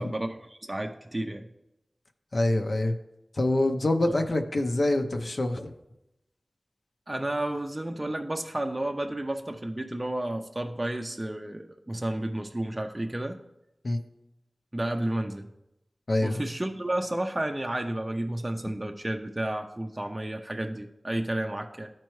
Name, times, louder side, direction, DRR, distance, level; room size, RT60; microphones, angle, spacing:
voice 1, 0.0-1.5 4.1-4.2 7.1-13.4 14.7-15.5 16.2-21.9, right 1 dB, 20° right, 3 dB, 0.5 m, -31 dB
voice 2, 2.3-2.9 3.3-5.7 13.8-14.0 16.1-16.4, left 1 dB, 55° left, 5 dB, 0.7 m, -25 dB
13.0 x 4.5 x 3.1 m, 0.90 s
wide cardioid pair, 65°, 0 cm